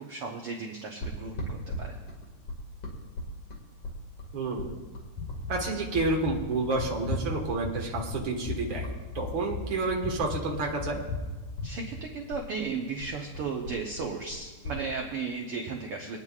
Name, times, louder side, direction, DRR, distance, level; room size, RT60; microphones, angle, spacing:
voice 1, 0.1-2.0 11.6-16.2, right 4 dB, 75° right, 0 dB, 1.3 m, -35 dB
sound 1, 1.0-9.3 9.6-11.3 11.5-14.8, equal, 45° left, 2.6 m, -39 dB
voice 2, 4.3-4.7 5.5-11.0, right 3 dB, 50° right, 0 dB, 1.7 m, -30 dB
sound 2, 5.2-5.6 5.9-6.4 6.8-7.3 7.6-8.1 8.5-8.9 9.2-9.7 10.0-10.4 10.8-11.3 11.6-11.7, left 5 dB, 70° left, 4.5 m, -34 dB
24.0 x 9.7 x 2.4 m, 1.3 s
omnidirectional pair, 3.9 m